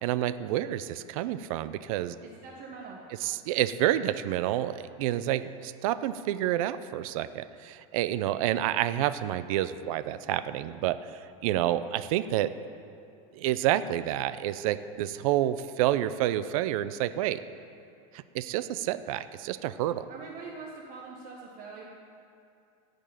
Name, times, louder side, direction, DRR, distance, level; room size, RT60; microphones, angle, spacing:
voice 1, 0.0-2.1 3.2-12.5 13.4-17.4 18.1-20.1, right 13 dB, 70° right, 13 dB, 0.5 m, -29 dB
voice 2, 2.2-3.0 20.1-21.8, right 4 dB, 45° right, -3 dB, 1.4 m, -43 dB
15.0 x 5.3 x 9.0 m, 2.5 s
supercardioid pair, 155°, 19 cm